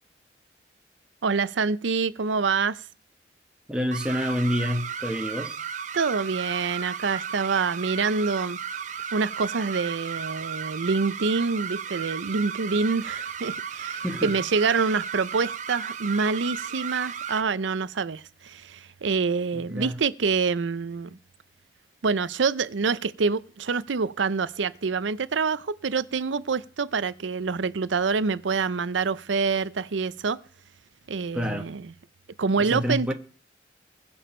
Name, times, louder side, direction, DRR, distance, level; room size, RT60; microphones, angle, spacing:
voice 1, 1.2-2.8 5.9-8.6 9.1-21.1 22.0-30.4 31.1-31.8 32.4-33.1, right 4 dB, 90° right, 0.6 m, -26 dB
voice 2, 3.7-5.6 14.0-14.3 19.5-20.0 31.3-31.7 32.6-33.1, equal, 5° right, 1.2 m, -28 dB
sound 1, 3.9-17.4, right 7 dB, 40° right, 0.7 m, -34 dB
21.0 x 7.1 x 4.4 m
head